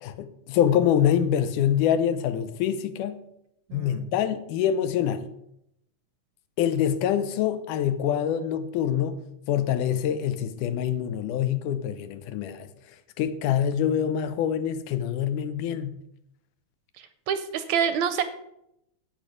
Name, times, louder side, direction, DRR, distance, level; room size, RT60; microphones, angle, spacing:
voice 1, 0.0-3.2 3.7-5.3 6.6-12.7 13.2-16.0, left 9 dB, 90° left, 2.3 m, -25 dB
voice 2, 3.7-4.1 17.0-18.2, right 8 dB, 75° right, 1.7 m, -27 dB
9.0 x 8.4 x 4.9 m
omnidirectional pair, 3.5 m